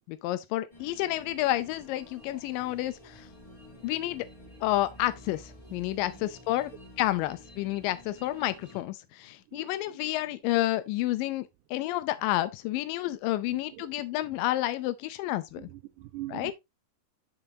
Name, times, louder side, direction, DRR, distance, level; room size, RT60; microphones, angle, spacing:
voice 1, 0.1-3.3 3.8-4.3 4.6-6.7 7.0-15.7 16.3-16.5, left 15 dB, 90° left, 2.3 m, -30 dB
sound 1, 0.7-8.8, left 1 dB, 45° left, 0.4 m, -51 dB
voice 2, 9.5-10.1 13.1-13.2 13.5-14.1 14.4-14.5 15.6-16.5, right 17 dB, 80° right, 1.9 m, -44 dB
7.0 x 6.8 x 2.7 m
omnidirectional pair, 3.9 m